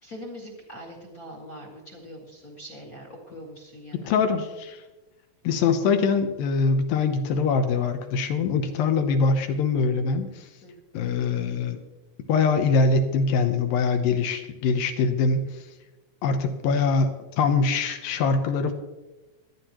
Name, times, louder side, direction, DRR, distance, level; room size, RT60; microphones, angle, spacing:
voice 1, 0.0-4.2 10.6-10.8, equal, 35° left, -2 dB, 1.4 m, -42 dB
voice 2, 4.1-4.8 5.4-10.5 10.9-11.8 12.3-15.5 16.2-18.7, left 4 dB, 75° left, 7 dB, 2.5 m, -23 dB
21.5 x 9.9 x 3.0 m, 1.1 s
omnidirectional pair, 4.4 m